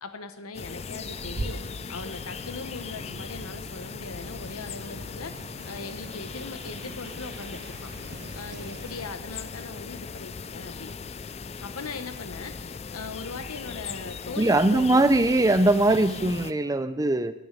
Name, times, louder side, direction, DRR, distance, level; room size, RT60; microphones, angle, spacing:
voice 1, 0.0-1.6 1.9-7.9 8.3-10.9 11.6-14.8, left 3 dB, 85° left, 8 dB, 1.0 m, -39 dB
sound 1, 0.5-16.5, left 5 dB, 30° left, 0.4 m, -38 dB
sound 2, 1.1-9.1, right 2 dB, 55° right, 0.9 m, -42 dB
voice 2, 14.4-17.3, right 2 dB, 15° right, 11 dB, 0.6 m, -21 dB
19.0 x 6.9 x 6.7 m, 0.94 s
head